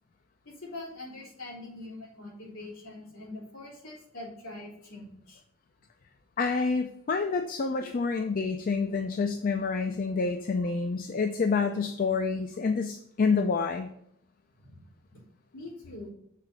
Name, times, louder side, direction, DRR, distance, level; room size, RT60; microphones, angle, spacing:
voice 1, 0.4-5.4 14.6-14.8 15.1-15.2 15.5-16.1, left 2 dB, 65° left, -4 dB, 3.0 m, -43 dB
voice 2, 6.4-13.9, left 4 dB, 40° left, 6 dB, 0.4 m, -28 dB
6.6 x 3.8 x 6.0 m, 0.73 s
head